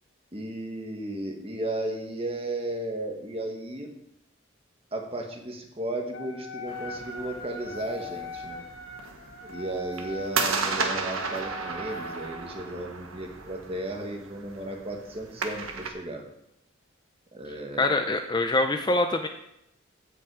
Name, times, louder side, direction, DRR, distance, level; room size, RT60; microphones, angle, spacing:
voice 1, 0.3-3.9 4.9-8.7 9.5-16.2 17.3-18.0, right 1 dB, 25° right, 2 dB, 1.5 m, -34 dB
Wind instrument woodwind instrument, 6.1-12.6, left 1 dB, 60° left, 1.7 m, -41 dB
sound 1, 6.7-15.9, right 4 dB, 85° right, 1.4 m, -35 dB
voice 2, 17.8-19.3, left 2 dB, 20° left, 6 dB, 0.5 m, -24 dB
16.0 x 5.8 x 4.8 m, 0.81 s
head